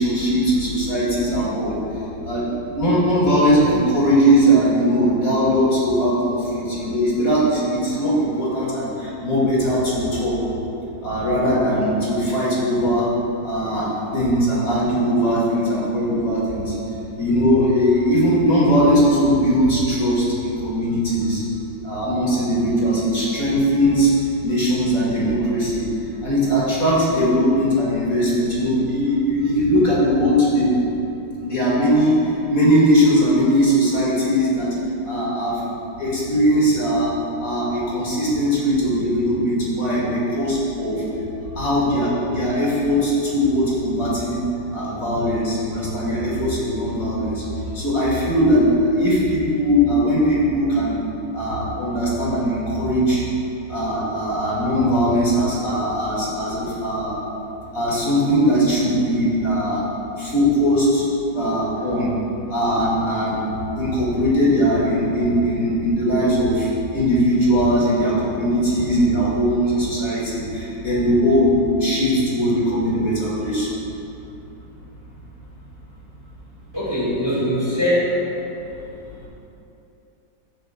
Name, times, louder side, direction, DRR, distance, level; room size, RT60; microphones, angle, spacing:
voice 1, 0.0-1.7 2.2-10.4 11.0-13.1 13.4-16.7 17.2-21.4 21.8-24.1 24.4-25.8 26.2-30.7 31.4-32.1 32.5-34.7 35.0-35.5 36.0-37.1 37.4-41.0 41.6-44.4 44.7-47.4 47.7-48.6 49.0-51.0 51.3-53.2 53.7-57.1 57.7-59.8 60.2-61.0 61.3-62.1 62.5-63.4 63.8-73.7, equal, 50° left, -7 dB, 2.5 m, -20 dB
voice 2, 76.7-78.3 79.2-79.3, equal, 15° right, -7 dB, 1.7 m, -22 dB
14.5 x 8.0 x 2.3 m, 2.8 s
omnidirectional pair, 1.9 m